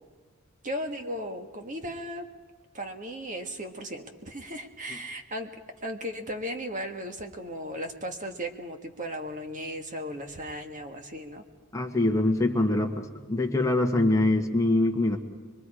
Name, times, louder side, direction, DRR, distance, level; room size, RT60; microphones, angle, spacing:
voice 1, 0.6-2.3 2.7-5.5 5.8-11.4, equal, 35° right, 5 dB, 1.5 m, -36 dB
voice 2, 11.7-15.2, left 2 dB, 15° left, 1 dB, 1.6 m, -24 dB
24.0 x 23.0 x 4.9 m, 1.4 s
head